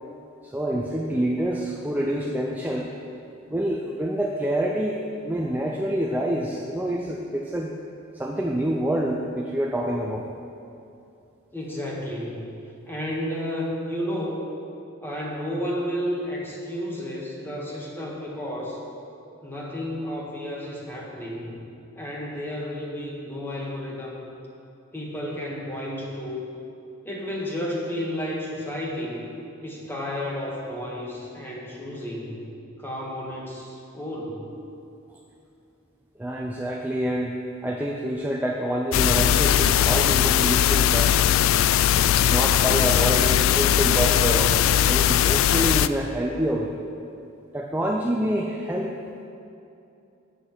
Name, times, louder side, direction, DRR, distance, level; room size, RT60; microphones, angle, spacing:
voice 1, 0.4-2.9 3.5-7.7 8.1-10.3 36.2-37.4 37.6-41.1 42.2-46.7 47.5-49.0, right 1 dB, 10° right, 0 dB, 0.4 m, -27 dB
voice 2, 11.5-12.5 12.9-14.4 15.0-18.8 19.4-21.6 22.0-24.2 24.9-26.4 27.0-29.2 29.6-32.5 32.8-34.5, equal, 10° left, -4 dB, 1.6 m, -32 dB
sound 1, 38.9-45.9, left 10 dB, 85° left, 0.3 m, -19 dB
8.2 x 6.3 x 7.6 m, 2.7 s
head